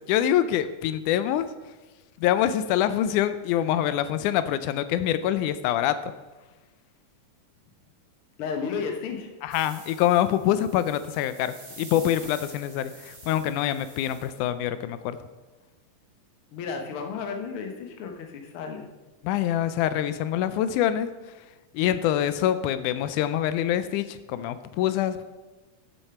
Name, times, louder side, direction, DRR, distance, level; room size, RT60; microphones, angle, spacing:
voice 1, 0.1-1.5 2.2-6.0 9.4-15.2 19.2-21.1 21.7-25.2, left 11 dB, 85° left, 12 dB, 2.0 m, -25 dB
voice 2, 8.4-9.3 16.5-18.9, left 5 dB, 55° left, 3 dB, 1.7 m, -33 dB
sound 1, 9.5-14.4, right 2 dB, 30° right, 2.3 m, -47 dB
8.6 x 7.2 x 5.8 m, 1.2 s
omnidirectional pair, 3.5 m